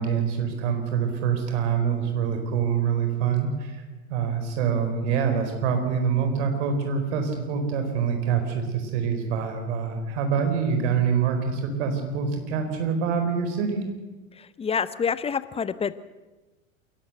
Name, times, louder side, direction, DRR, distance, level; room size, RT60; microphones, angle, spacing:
voice 1, 0.0-3.8 4.1-13.8, right 6 dB, 60° right, 6 dB, 4.6 m, -25 dB
voice 2, 14.4-15.9, left 6 dB, 15° left, 15 dB, 0.7 m, -27 dB
27.5 x 12.0 x 8.1 m, 1.2 s
figure-of-eight pair, 85°, 40 cm